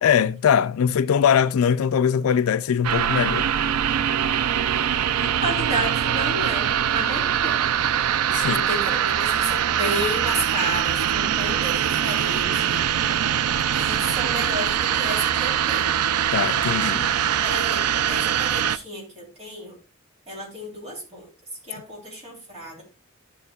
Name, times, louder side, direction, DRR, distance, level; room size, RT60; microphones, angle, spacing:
voice 1, 0.0-3.5 8.3-8.6 16.3-17.1, left 8 dB, 75° left, 0.4 m, -21 dB
sound 1, 2.8-18.8, right 9 dB, 90° right, 0.4 m, -23 dB
voice 2, 5.2-7.6 8.4-13.2 13.7-16.0 17.4-19.8 20.3-21.3 21.6-22.8, equal, 30° right, 3.5 m, -32 dB
12.0 x 6.9 x 2.3 m
head